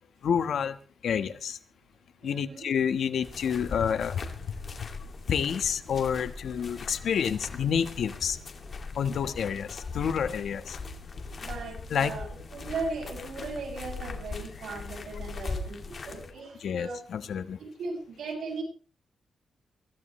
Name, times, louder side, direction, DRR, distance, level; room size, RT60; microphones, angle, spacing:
voice 1, 0.2-0.8 1.0-1.6 2.2-4.9 5.3-8.4 8.9-10.8 11.9-12.1 16.6-17.6, left 7 dB, 75° left, 1.3 m, -29 dB
voice 2, 2.2-2.7 11.4-17.0 17.6-18.6, right 3 dB, 85° right, 7.5 m, -37 dB
sound 1, 3.2-16.3, left 4 dB, 45° left, 2.4 m, -40 dB
23.0 x 15.5 x 3.2 m
wide cardioid pair, 120°, 0 cm